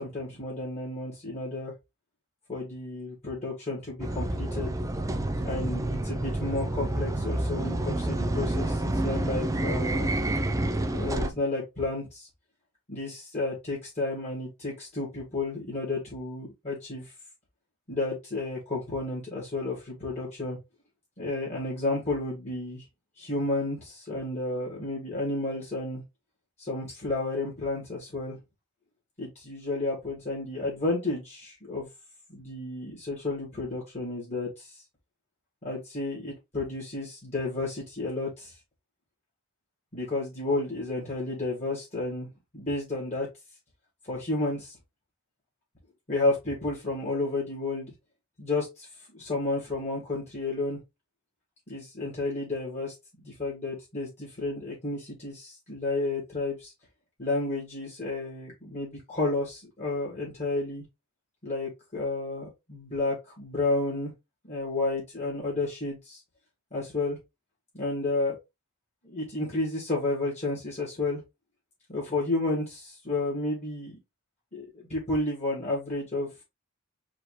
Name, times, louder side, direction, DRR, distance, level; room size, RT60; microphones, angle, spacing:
voice 1, 0.0-1.7 2.5-4.8 5.4-10.2 10.9-12.3 12.9-17.1 17.9-20.6 21.2-22.8 23.2-26.0 26.6-28.4 29.2-31.9 32.3-34.7 35.6-38.5 39.9-43.3 44.1-44.8 46.1-47.9 48.4-48.9 49.1-50.8 51.7-52.9 53.2-56.7 57.2-60.8 61.4-64.1 64.5-66.2 66.7-67.2 67.7-68.4 69.0-71.2 71.9-74.0 74.5-76.3, left 2 dB, 30° left, -5 dB, 2.1 m, -31 dB
sound 1, 4.0-11.3, right 1 dB, 15° right, 0.4 m, -28 dB
4.9 x 2.9 x 3.0 m, 0.22 s
head